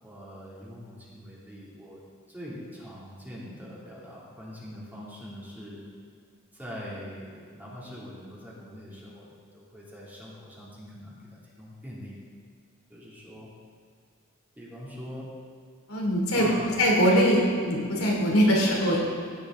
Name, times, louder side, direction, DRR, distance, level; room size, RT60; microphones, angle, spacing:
voice 1, 0.0-2.0 2.3-5.8 6.5-12.1 12.9-13.5 14.6-15.3 16.3-16.7, equal, 10° right, -7 dB, 2.6 m, -43 dB
voice 2, 15.9-16.5 16.8-19.0, equal, 85° left, -3 dB, 2.9 m, -22 dB
15.5 x 8.8 x 3.7 m, 2.2 s
head